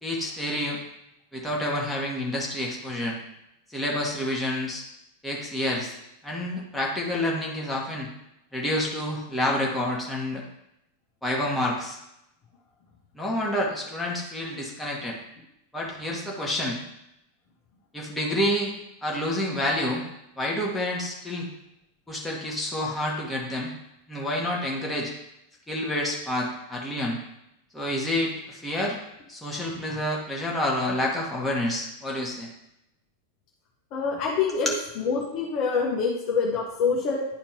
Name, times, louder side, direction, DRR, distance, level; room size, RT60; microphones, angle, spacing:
voice 1, 0.0-0.8 1.3-3.2 3.7-4.8 5.2-6.0 6.2-8.1 8.5-10.4 11.2-12.0 13.1-15.2 15.7-16.8 17.9-18.7 19.0-20.0 20.4-21.5 22.1-23.7 24.1-25.1 25.7-27.2 27.7-29.0 29.3-32.5 34.5-34.8, left 1 dB, 5° left, -4 dB, 1.7 m, -28 dB
voice 2, 33.9-34.7 35.0-37.3, left 5 dB, 40° left, -1 dB, 1.1 m, -25 dB
10.5 x 4.3 x 3.0 m, 0.85 s
figure-of-eight pair, 90°, 0 cm